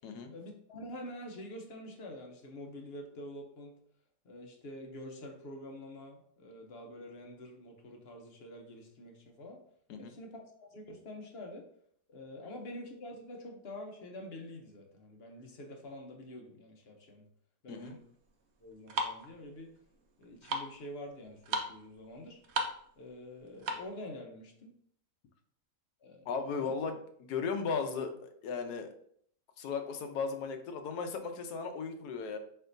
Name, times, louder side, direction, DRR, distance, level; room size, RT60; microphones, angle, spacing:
voice 1, 0.3-3.7 4.2-9.6 10.0-11.7 12.1-17.3 17.6-18.0 18.6-19.7 20.2-22.4 23.0-24.7 26.0-26.2 26.6-26.8, left 1 dB, 50° left, 2 dB, 0.8 m, -47 dB
sound 1, 17.8-24.0, right 2 dB, 60° right, 0.7 m, -38 dB
voice 2, 26.3-28.9 29.6-32.4, left 5 dB, 75° left, 7 dB, 1.2 m, -36 dB
4.6 x 4.3 x 2.6 m, 0.63 s
omnidirectional pair, 1.7 m